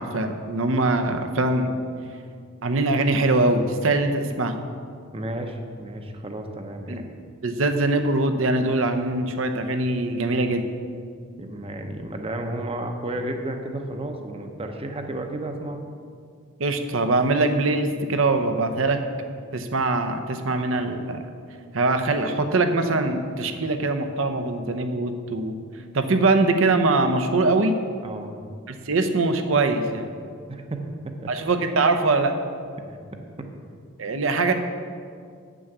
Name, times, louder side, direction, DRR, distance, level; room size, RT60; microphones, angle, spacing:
voice 1, 0.0-1.8 2.6-4.6 6.9-7.0 7.4-10.6 16.6-19.0 19.5-21.3 21.7-25.6 25.9-27.8 28.7-30.1 31.3-32.3 34.0-34.5, right 2 dB, 70° right, 7 dB, 0.7 m, -22 dB
voice 2, 5.1-7.1 11.4-15.8 28.0-28.3 30.5-31.3 32.9-33.0 33.4-33.5, right 1 dB, 30° right, 5 dB, 0.8 m, -32 dB
8.2 x 6.2 x 6.7 m, 2.2 s
head